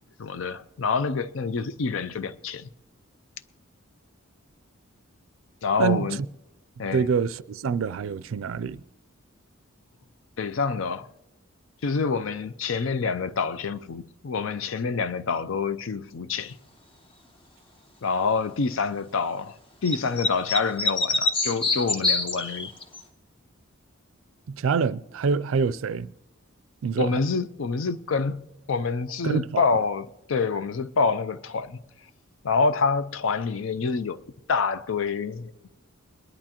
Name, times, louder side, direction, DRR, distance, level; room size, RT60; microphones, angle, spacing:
voice 1, 0.2-2.7 5.6-6.2 6.8-7.1 10.4-11.1 11.8-16.6 18.0-19.6 19.8-22.7 27.0-28.4 28.7-31.8 32.4-34.2 34.5-35.7, left 4 dB, 70° left, 0.5 m, -27 dB
voice 2, 5.8-6.1 6.9-8.8 24.5-26.1 26.8-27.2 29.2-29.7, right 5 dB, 75° right, 0.4 m, -26 dB
sound 1, 19.8-23.0, left 3 dB, 25° left, 1.0 m, -25 dB
22.0 x 11.0 x 2.9 m
head